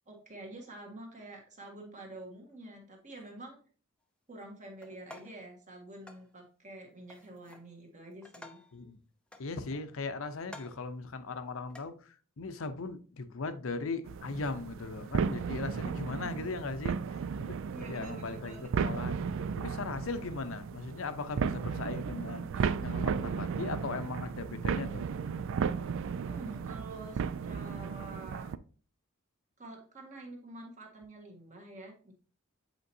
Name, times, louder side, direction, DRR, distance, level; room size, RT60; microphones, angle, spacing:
voice 1, 0.1-3.6 4.3-8.6 15.7-16.4 17.7-18.7 26.2-28.5 29.6-32.1, right 1 dB, 35° right, 1 dB, 1.6 m, -47 dB
sound 1, 4.8-5.5 6.1-6.3 7.1-7.7 8.1-8.8 9.3-10.0 10.4-10.9 11.7-11.9, left 2 dB, 5° left, 0.5 m, -52 dB
voice 2, 9.4-19.2 19.6-25.1, left 3 dB, 70° left, 10 dB, 0.7 m, -38 dB
sound 2, 14.1-28.6, right 6 dB, 65° right, 0.3 m, -35 dB
8.0 x 4.4 x 2.7 m, 0.40 s
head